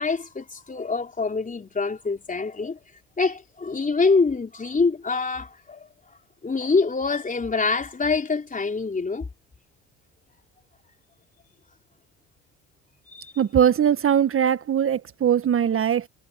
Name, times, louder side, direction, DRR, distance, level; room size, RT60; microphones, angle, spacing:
voice 1, 0.0-2.8 3.2-5.9 6.4-9.3 13.1-13.3, left 4 dB, 25° left, 3.9 m, -25 dB
voice 2, 13.4-16.1, right 9 dB, 40° right, 1.4 m, -21 dB
hypercardioid pair, 65°, 32 cm